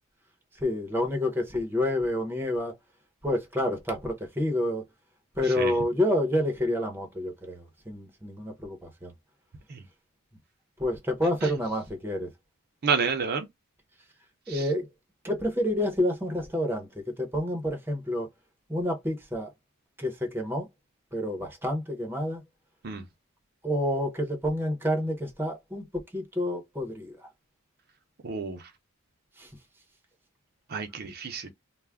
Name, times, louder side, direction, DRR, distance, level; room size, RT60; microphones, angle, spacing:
voice 1, 0.6-2.7 3.2-4.8 5.4-9.1 10.8-12.3 14.5-14.9 15.2-18.3 18.7-19.5 20.0-20.7 21.1-22.4 23.6-25.9 26.1-27.2 29.4-29.5, left 1 dB, 10° right, 0.7 m, -28 dB
voice 2, 12.8-13.5 14.5-14.7 22.8-23.0 28.2-28.6 30.7-31.5, right 5 dB, 50° right, 0.5 m, -30 dB
2.3 x 2.1 x 3.3 m
head